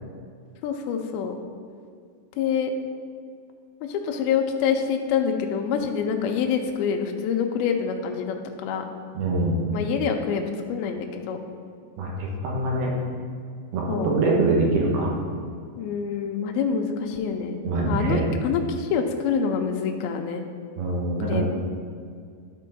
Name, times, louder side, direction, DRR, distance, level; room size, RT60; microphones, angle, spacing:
voice 1, 0.6-1.3 2.4-2.7 3.9-8.8 9.7-10.4 10.7-11.4 13.9-14.1 15.8-20.4 21.2-21.4, left 7 dB, 85° left, 3 dB, 2.3 m, -26 dB
voice 2, 9.1-9.6 12.0-12.9 13.7-15.1 17.6-18.3 20.8-21.4, right 2 dB, 75° right, -2 dB, 3.1 m, -24 dB
12.0 x 4.5 x 4.2 m, 2.2 s
omnidirectional pair, 4.8 m